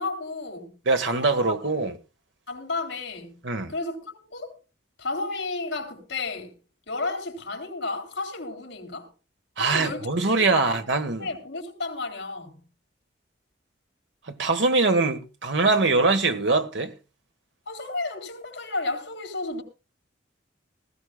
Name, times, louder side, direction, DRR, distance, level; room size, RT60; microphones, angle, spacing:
voice 1, 0.0-0.7 1.1-1.9 2.5-3.4 3.7-4.6 5.0-6.6 6.9-9.1 9.6-10.8 11.1-12.6 17.7-19.6, left 3 dB, 70° left, 3.9 m, -32 dB
voice 2, 0.8-2.0 3.4-3.7 9.6-11.3 14.3-16.9, right 3 dB, 80° right, 1.5 m, -23 dB
19.5 x 15.0 x 2.3 m
head